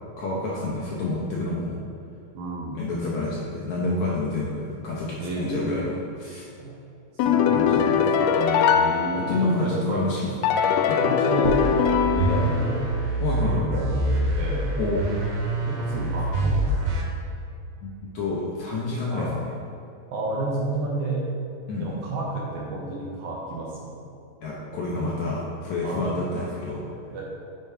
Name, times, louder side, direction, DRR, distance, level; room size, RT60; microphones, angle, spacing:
voice 1, 0.2-1.8 2.7-6.5 7.5-8.1 8.3-8.7 9.1-10.5 10.9-11.0 13.2-13.7 14.8-15.1 16.0-16.1 17.8-19.3 21.7-21.9 24.4-26.9, left 2 dB, 70° left, -4 dB, 1.8 m, -29 dB
voice 2, 2.3-2.8 5.2-5.8 6.6-6.7 7.1-7.7 8.7-10.3 11.0-13.0 13.5-14.8 15.7-17.0 19.1-19.3 20.1-21.2 21.8-24.0 24.9-25.2 25.8-26.1 27.1-27.2, right 2 dB, 70° right, -4 dB, 2.0 m, -31 dB
sound 1, 7.2-9.8 10.4-12.9, left 7 dB, 85° left, 1.8 m, -22 dB
sound 2, 11.4-17.0, right 1 dB, 85° right, 3.3 m, -26 dB
8.7 x 4.4 x 4.8 m, 2.7 s
omnidirectional pair, 4.2 m